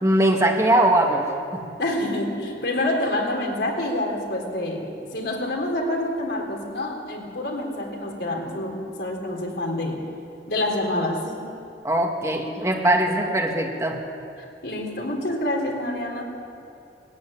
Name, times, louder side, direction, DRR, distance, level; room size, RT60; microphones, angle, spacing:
voice 1, 0.0-1.6 11.8-14.0, right 1 dB, 15° right, 1 dB, 1.8 m, -21 dB
voice 2, 1.8-10.0 10.5-11.4 14.4-16.2, left 1 dB, 65° left, 1 dB, 3.7 m, -27 dB
20.0 x 14.5 x 9.9 m, 2.7 s
head